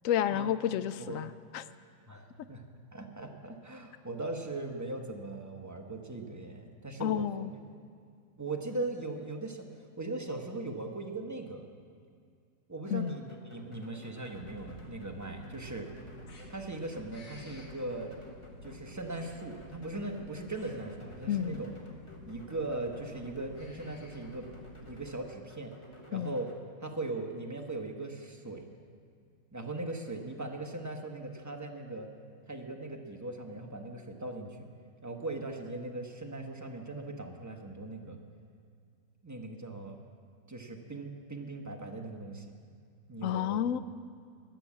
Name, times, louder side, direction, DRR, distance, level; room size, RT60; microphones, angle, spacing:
voice 1, 0.0-1.7 7.0-7.5 12.9-13.1 21.3-21.6 26.1-26.3 43.2-43.8, left 10 dB, 70° left, 13 dB, 0.8 m, -30 dB
voice 2, 2.1-2.7 2.9-7.3 8.4-9.6 10.0-11.6 12.7-15.9 16.5-18.1 18.6-21.7 22.3-24.4 24.8-25.7 26.1-26.5 26.8-28.7 29.5-32.1 32.5-34.7 35.0-38.2 39.2-40.0 40.5-42.4 43.1-43.6, right 2 dB, 15° right, 2 dB, 0.9 m, -39 dB
sound 1, 12.9-26.6, equal, 20° left, 1.0 m, -54 dB
sound 2, 14.3-24.9, left 1 dB, 55° left, 1.9 m, -51 dB
20.5 x 7.0 x 7.4 m, 2.3 s
omnidirectional pair, 1.8 m